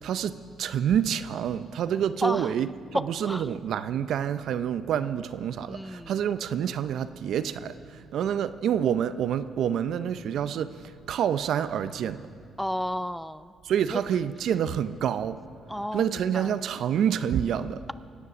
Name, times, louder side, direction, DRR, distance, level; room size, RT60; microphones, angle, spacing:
voice 1, 0.0-10.7 11.1-12.2 13.6-15.4 15.9-17.8, right 9 dB, 70° right, 13 dB, 0.6 m, -27 dB
voice 2, 2.2-2.5 2.9-3.6 5.7-6.2 12.6-13.5 13.9-14.0 15.7-16.5, equal, 5° left, 15 dB, 0.4 m, -32 dB
23.5 x 8.4 x 6.1 m, 2.2 s
cardioid pair, 90°, 0 cm